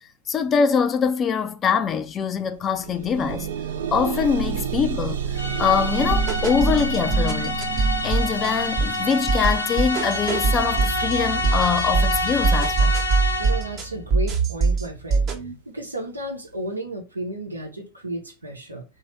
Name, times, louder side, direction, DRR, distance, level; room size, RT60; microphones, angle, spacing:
voice 1, 0.3-3.5 3.9-12.9, left 6 dB, 25° left, 0.5 m, -23 dB
sound 1, 1.9-2.0 2.4-13.4 14.2-14.3 14.7-14.8, right 9 dB, 60° right, 0.5 m, -32 dB
sound 2, 5.4-13.8, left 2 dB, 75° left, 0.6 m, -28 dB
sound 3, 6.0-15.5, right 4 dB, 30° right, 0.8 m, -24 dB
voice 2, 13.4-15.3 15.7-18.8, right 3 dB, 80° right, 1.0 m, -31 dB
3.1 x 2.7 x 4.5 m
figure-of-eight pair, 90°, 0 cm